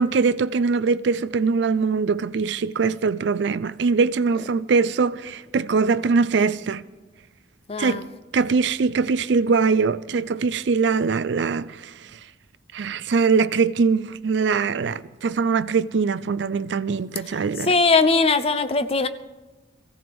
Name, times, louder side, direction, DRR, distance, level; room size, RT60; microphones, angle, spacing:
voice 1, 0.0-6.8 7.8-8.0 8.3-12.1 12.7-17.7, right 5 dB, 65° right, 0.4 m, -22 dB
voice 2, 7.7-8.0 17.6-19.1, left 3 dB, 30° left, 0.6 m, -20 dB
23.5 x 15.5 x 3.5 m
head